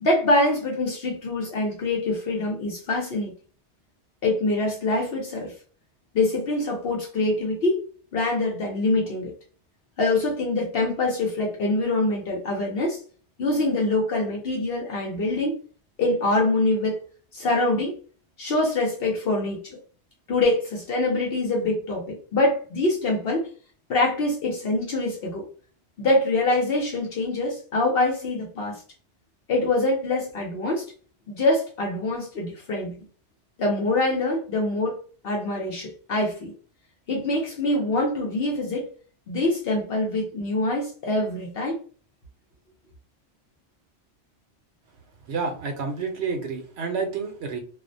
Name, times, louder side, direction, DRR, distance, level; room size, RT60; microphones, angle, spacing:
voice 1, 0.0-3.3 4.2-5.5 6.1-7.8 8.1-9.3 10.0-13.0 13.4-15.6 16.0-17.0 17.3-18.0 18.4-19.8 20.3-23.5 23.9-25.4 26.0-28.8 29.5-30.9 31.3-33.0 33.6-35.0 35.2-36.5 37.1-38.9 39.3-41.8, left 2 dB, 65° left, 0.8 m, -24 dB
voice 2, 45.3-47.6, right 4 dB, 75° right, 0.9 m, -29 dB
2.4 x 2.1 x 2.5 m
omnidirectional pair, 1.1 m